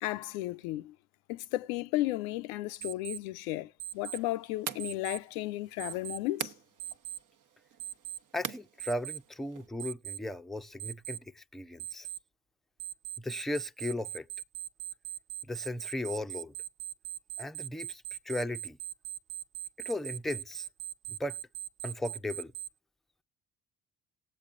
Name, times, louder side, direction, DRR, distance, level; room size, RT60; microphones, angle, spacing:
voice 1, 0.0-1.0 1.3-6.5, left 16 dB, 85° left, 0.6 m, -34 dB
Alarm, 2.8-3.2 3.8-4.2 4.8-5.2 5.8-6.2 6.8-7.2 7.8-8.2 8.8-9.2 9.8-10.2 10.8-11.2 11.8-12.2 12.8-22.7, right 11 dB, 75° right, 0.8 m, -40 dB
sound 1, 3.9-9.7, right 8 dB, 50° right, 1.0 m, -45 dB
voice 2, 8.3-12.1 13.2-14.3 15.5-16.5 17.4-18.8 19.8-20.7 21.1-21.4 21.8-22.5, left 1 dB, ahead, 0.5 m, -36 dB
18.5 x 8.0 x 2.5 m
hypercardioid pair, 50°, 41 cm